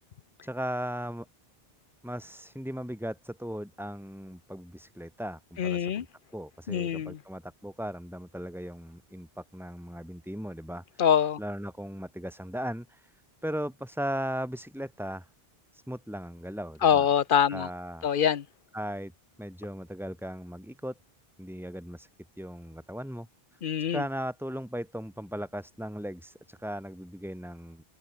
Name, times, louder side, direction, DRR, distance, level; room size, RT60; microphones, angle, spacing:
voice 1, 0.4-1.3 2.0-6.1 6.3-11.0 11.4-15.3 15.7-17.1 17.5-18.1 18.7-19.1 19.4-20.9 21.4-22.1 22.4-23.3 23.8-27.8, equal, ahead, 2.8 m, -37 dB
voice 2, 5.6-6.0 6.7-7.2 11.0-11.4 16.8-17.7 18.0-18.4 23.6-24.0, left 8 dB, 60° left, 0.9 m, -24 dB
open air
omnidirectional pair, 1.0 m